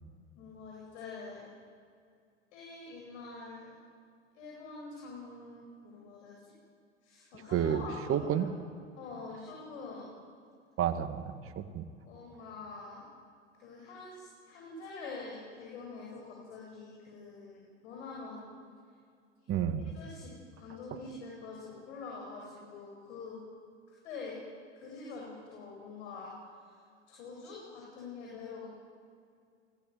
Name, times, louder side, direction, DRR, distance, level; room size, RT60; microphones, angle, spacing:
voice 1, 0.3-1.4 2.5-3.7 4.3-6.5 7.0-8.5 9.0-10.1 12.0-13.0 13.5-18.5 19.4-19.5 19.9-23.4 24.0-24.4 24.7-26.3 26.6-26.8 27.1-28.7, left 4 dB, 65° left, -3 dB, 8.0 m, -45 dB
voice 2, 7.5-7.8 8.1-8.5 10.8-11.8 19.5-19.9, right 9 dB, 35° right, 9 dB, 2.2 m, -30 dB
29.0 x 20.0 x 9.5 m, 2.3 s
figure-of-eight pair, 85°, 37 cm